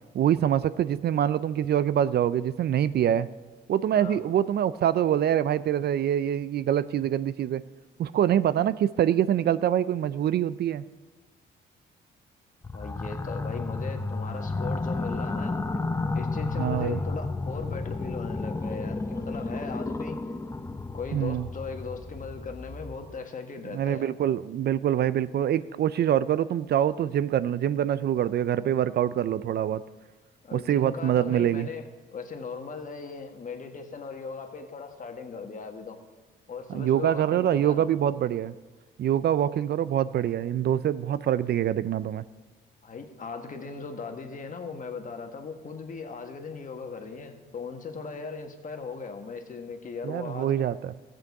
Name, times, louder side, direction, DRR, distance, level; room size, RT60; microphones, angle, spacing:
voice 1, 0.1-3.3 3.7-7.6 8.0-10.8 16.6-17.0 21.1-21.5 23.7-29.8 30.5-31.7 36.7-38.5 39.0-42.2 50.0-50.9, right 10 dB, 55° right, 16 dB, 0.4 m, -25 dB
sound 1, 12.6-23.2, left 3 dB, 15° left, 0.6 m, -32 dB
voice 2, 12.7-15.6 16.1-20.2 20.9-24.1 30.4-36.0 36.5-37.9 42.8-50.7, left 5 dB, 40° left, 5 dB, 1.5 m, -38 dB
14.5 x 7.7 x 4.7 m, 1.3 s
cardioid pair, 90°, 20 cm